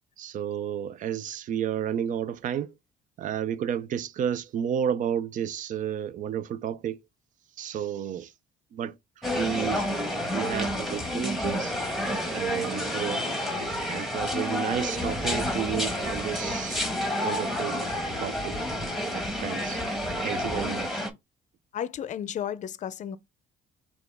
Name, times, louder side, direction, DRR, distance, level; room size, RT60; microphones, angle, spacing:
voice 1, 0.2-2.7 3.2-7.0 7.6-8.3 8.7-8.9 9.3-9.9 10.3-11.7 12.3-13.3 13.9-16.8 17.2-17.8 18.2-18.6 19.1-19.8 20.2-21.1, right 9 dB, 50° right, 0.5 m, -31 dB
sound 1, 9.2-21.1, equal, ahead, 1.4 m, -29 dB
voice 2, 21.7-23.2, left 9 dB, 45° left, 0.5 m, -33 dB
6.0 x 2.4 x 3.5 m
cardioid pair, 110°, 17 cm